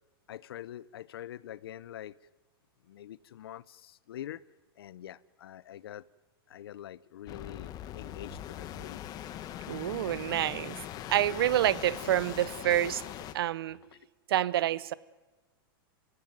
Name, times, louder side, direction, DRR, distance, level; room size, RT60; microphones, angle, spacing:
voice 1, 0.3-2.2 2.9-4.4 4.8-6.0 6.5-9.1 13.9-14.1, left 11 dB, 80° left, 0.7 m, -45 dB
sound 1, 7.3-13.3, left 11 dB, 30° left, 1.3 m, -41 dB
voice 2, 9.7-10.8 11.1-13.0 13.3-13.8 14.3-14.9, right 12 dB, 75° right, 0.8 m, -28 dB
27.5 x 16.5 x 9.3 m
supercardioid pair, 140°, 12 cm